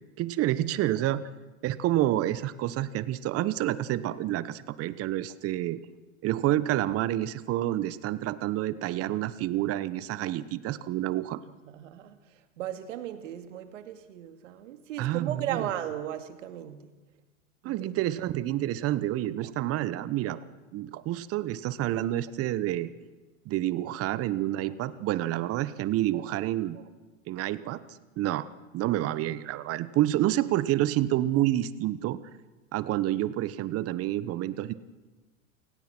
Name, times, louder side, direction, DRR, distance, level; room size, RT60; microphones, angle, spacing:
voice 1, 0.2-1.2 1.6-5.8 6.2-11.4 15.0-15.6 17.6-20.4 20.7-22.9 23.5-26.8 27.3-27.8 28.2-28.5 28.7-32.2 32.7-34.7, right 14 dB, 35° right, 16 dB, 1.2 m, -28 dB
voice 2, 11.4-16.9 17.6-18.0 24.6-24.7 26.1-26.2 26.7-26.8, right 11 dB, 65° right, 8 dB, 2.5 m, -37 dB
28.5 x 17.5 x 6.1 m, 1.2 s
hypercardioid pair, 105°, 40 cm